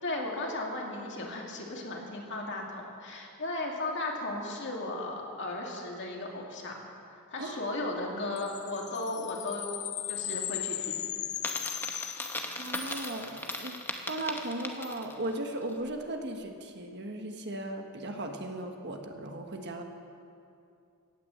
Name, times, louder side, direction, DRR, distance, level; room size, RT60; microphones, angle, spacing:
voice 1, 0.0-6.8 7.1-9.7 10.1-11.0, left 2 dB, 55° left, -1 dB, 2.4 m, -36 dB
sound 1, 8.4-13.0, left 12 dB, 30° left, 0.3 m, -37 dB
Coin (dropping), 11.3-15.2, left 2 dB, 10° left, 0.9 m, -38 dB
voice 2, 12.6-13.8 14.1-19.8, right 1 dB, 50° right, 4 dB, 1.4 m, -37 dB
16.5 x 9.7 x 7.8 m, 2.5 s
head